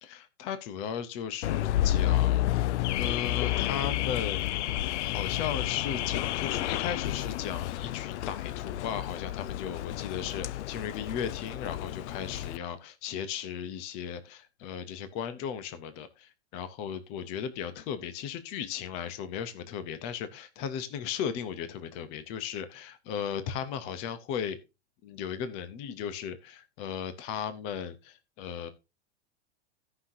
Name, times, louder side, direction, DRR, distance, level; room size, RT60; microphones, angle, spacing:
voice 1, 0.0-4.4 5.0-24.6 25.0-28.7, left 8 dB, 20° left, 0.5 m, -36 dB
Car / Alarm, 1.4-12.6, left 14 dB, 85° left, 0.5 m, -30 dB
16.0 x 5.7 x 2.5 m
supercardioid pair, 170°, 34 cm